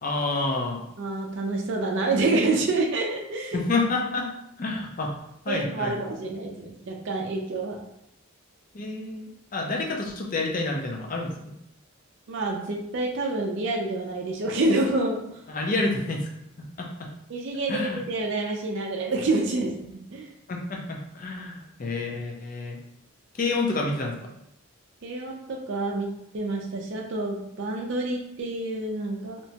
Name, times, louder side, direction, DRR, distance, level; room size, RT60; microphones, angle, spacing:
voice 1, 0.0-0.8 3.5-4.3 4.6-5.1 5.5-5.9 8.7-11.5 15.5-16.3 16.8-16.9 17.7-18.0 20.5-22.8 23.4-24.2, left 3 dB, 40° left, 1 dB, 0.4 m, -28 dB
voice 2, 1.0-3.6 5.5-7.8 12.3-15.4 17.3-20.3 25.0-26.1 26.3-29.4, right 2 dB, 55° right, 0 dB, 0.4 m, -28 dB
2.9 x 2.2 x 2.7 m, 0.78 s
head